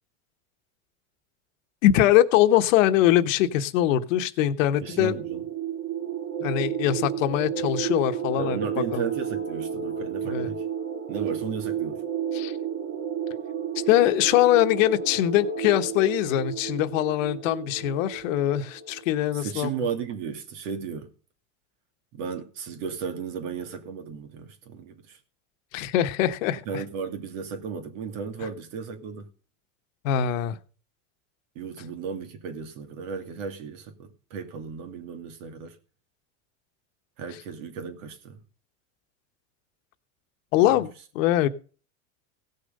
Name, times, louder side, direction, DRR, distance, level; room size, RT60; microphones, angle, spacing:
voice 1, 1.8-5.1 6.4-8.6 8.9-9.0 10.2-10.5 12.3-12.5 13.9-19.7 25.7-26.8 30.0-30.6 40.5-40.9 41.1-41.5, left 12 dB, 75° left, 1.3 m, -22 dB
sound 1, 4.7-19.0, right 8 dB, 35° right, 2.3 m, -32 dB
voice 2, 4.8-5.5 8.4-10.6 11.1-12.0 19.3-21.1 22.1-25.2 26.7-29.3 31.5-35.8 37.2-38.4 40.6-40.8, right 6 dB, 70° right, 2.8 m, -34 dB
17.0 x 6.7 x 5.4 m
supercardioid pair, 125°, 39 cm